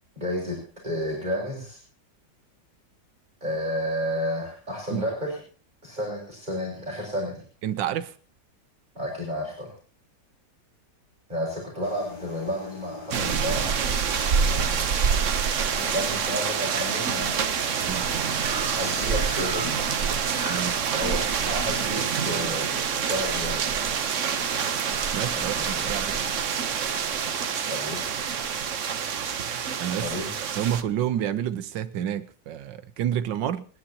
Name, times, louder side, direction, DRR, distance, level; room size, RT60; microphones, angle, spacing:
voice 1, 0.2-1.8 3.4-5.4 5.8-7.4 9.0-9.7 11.3-13.8 14.5-14.9 15.6-17.3 18.1-18.2 18.7-19.7 21.0-23.9 25.3-25.9 27.7-28.0 30.0-30.3 31.2-31.3, equal, 25° right, 5.6 m, -31 dB
voice 2, 7.6-8.1 17.8-18.1 20.5-20.9 25.1-26.2 29.8-30.1 30.4-33.6, right 10 dB, 90° right, 1.5 m, -29 dB
sound 1, 11.8-28.0, right 2 dB, 90° left, 5.2 m, -44 dB
sound 2, 12.3-12.7 13.2-13.3 13.5-13.9 14.2-14.9 15.5-15.9 16.3-16.4 16.6-16.7 17.1-21.9 22.2-24.7 25.0-25.6 26.0-27.4, equal, 5° right, 4.2 m, -41 dB
sound 3, 13.1-30.8, right 6 dB, 50° right, 1.2 m, -27 dB
29.0 x 10.0 x 2.9 m
omnidirectional pair, 1.9 m